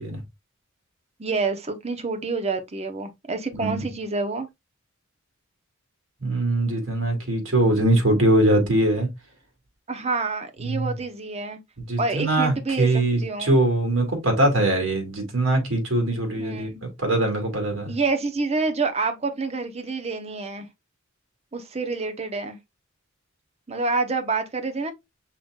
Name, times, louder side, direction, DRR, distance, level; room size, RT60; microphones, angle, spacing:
voice 1, 1.2-4.5 9.9-11.6 12.0-13.5 16.4-16.8 17.9-20.7 21.5-22.6 23.7-24.9, right 3 dB, 30° right, 0.8 m, -27 dB
voice 2, 3.5-3.8 6.2-9.1 10.6-10.9 11.9-17.9, right 1 dB, 65° right, 2.0 m, -22 dB
5.6 x 3.7 x 2.4 m
head